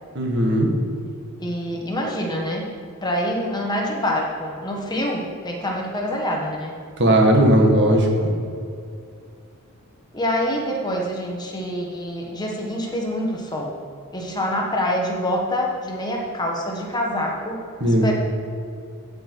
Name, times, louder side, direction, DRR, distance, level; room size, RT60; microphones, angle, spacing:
voice 1, 0.1-0.7 7.0-8.3 17.8-18.1, right 1 dB, 50° right, 1 dB, 1.6 m, -17 dB
voice 2, 1.4-2.7 3.0-6.7 10.1-13.8 14.1-17.6 17.8-18.1, equal, 20° left, -1 dB, 1.2 m, -26 dB
14.5 x 5.3 x 4.6 m, 2.4 s
head